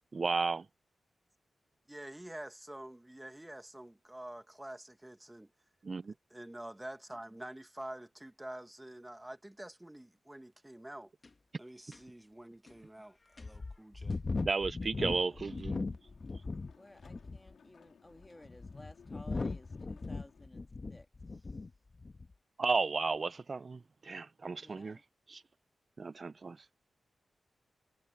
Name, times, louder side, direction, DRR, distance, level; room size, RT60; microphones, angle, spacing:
voice 1, 0.1-0.7 5.8-6.1 14.4-15.9 22.6-25.0 25.3-25.4 26.0-26.6, right 4 dB, 50° right, 0.8 m, -33 dB
voice 2, 1.9-5.5 6.3-11.1 11.6-14.2, right 1 dB, 15° right, 2.5 m, -47 dB
sound 1, 11.2-11.3 11.9-12.0 12.7-12.8 13.4-16.7 17.0-17.5 18.2-21.7 22.0-22.3, left 3 dB, 45° left, 1.8 m, -38 dB
sound 2, 14.9-20.5, left 6 dB, 75° left, 5.3 m, -62 dB
voice 3, 16.8-21.1 24.6-25.0, left 1 dB, 20° left, 2.5 m, -56 dB
supercardioid pair, 45°, 0 cm